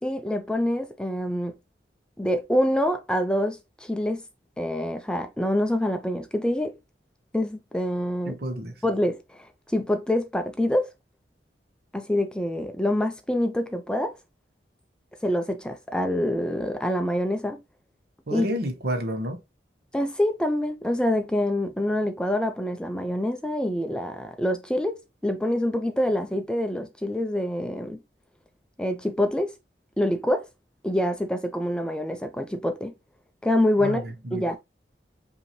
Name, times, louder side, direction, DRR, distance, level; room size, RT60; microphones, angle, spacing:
voice 1, 0.0-1.5 2.2-4.2 4.6-6.8 7.3-8.4 8.8-10.9 11.9-14.2 15.2-17.6 18.3-18.4 19.9-28.0 28.8-29.5 30.0-30.5 30.8-32.9 33.4-34.0 34.3-34.6, left 1 dB, 5° left, 0.4 m, -26 dB
voice 2, 8.2-8.8 18.3-19.4 33.8-34.4, equal, 60° right, 1.0 m, -30 dB
5.4 x 2.8 x 3.0 m
head